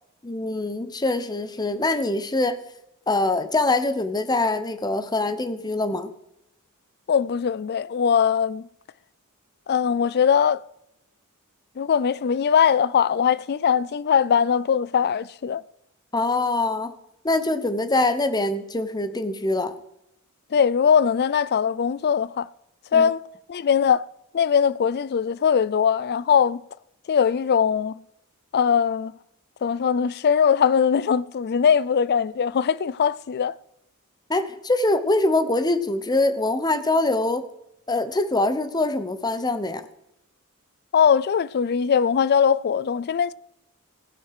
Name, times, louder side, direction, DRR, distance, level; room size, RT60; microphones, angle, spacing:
voice 1, 0.2-2.6 3.1-6.1 16.1-16.9 17.2-19.7 22.9-23.1 34.3-37.5 37.9-39.9, left 2 dB, 20° left, 0.9 m, -24 dB
voice 2, 7.1-8.7 9.7-10.6 11.8-15.6 20.5-22.5 22.9-23.2 23.5-24.1 24.3-26.6 27.1-28.0 28.5-29.1 29.6-33.6 40.9-43.3, left 7 dB, 50° left, 0.4 m, -21 dB
16.0 x 11.0 x 4.9 m
head